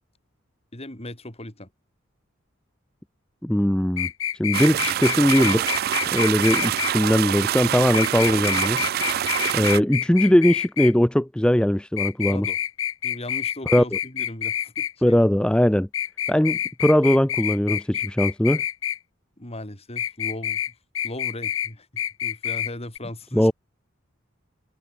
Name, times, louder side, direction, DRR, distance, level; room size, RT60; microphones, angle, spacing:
voice 1, 0.7-1.7 12.2-12.6 13.0-15.2 19.4-20.6 21.0-23.5, left 1 dB, 30° left, 4.1 m, -37 dB
voice 2, 3.4-4.1 4.4-5.7 6.1-8.8 9.5-12.5 13.7-13.8 15.0-15.9 16.3-18.6 23.3-23.5, equal, 5° left, 0.5 m, -20 dB
sound 1, 4.0-6.9 7.9-10.9 12.0-14.9 15.9-19.0 20.0-20.7 21.0-21.7 22.0-22.7 23.0-23.1, left 10 dB, 75° left, 0.9 m, -27 dB
sound 2, 4.5-9.8, right 11 dB, 50° right, 0.3 m, -25 dB
head